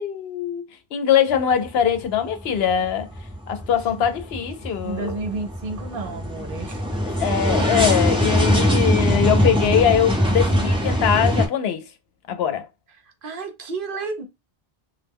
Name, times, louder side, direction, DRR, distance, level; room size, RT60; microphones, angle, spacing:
voice 1, 0.0-3.1 3.5-5.1 7.0-11.8 12.3-12.7, left 9 dB, 75° left, 0.8 m, -22 dB
sound 1, 1.3-1.9 2.3-11.5, equal, 5° right, 0.6 m, -22 dB
voice 2, 4.8-6.8 7.3-7.7 13.0-14.2, right 3 dB, 60° right, 0.8 m, -32 dB
2.2 x 2.1 x 3.4 m
omnidirectional pair, 1.0 m